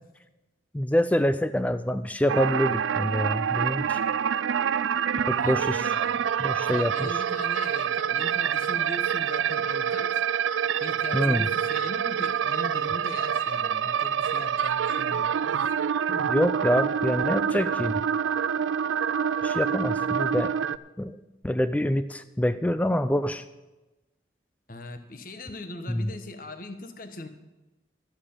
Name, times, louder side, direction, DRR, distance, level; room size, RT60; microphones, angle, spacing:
voice 1, 0.7-4.0 5.3-5.9 6.4-7.1 11.1-11.5 16.1-18.0 19.4-20.5 21.0-21.2 21.4-23.5 25.9-26.1, equal, 10° left, 12 dB, 0.3 m, -26 dB
sound 1, 2.3-20.8, right 8 dB, 90° right, 0.4 m, -26 dB
voice 2, 5.3-6.3 6.5-10.2 10.8-15.7 20.0-20.2 24.7-27.3, left 2 dB, 45° left, 7 dB, 1.2 m, -40 dB
11.5 x 7.3 x 8.6 m, 1.1 s
head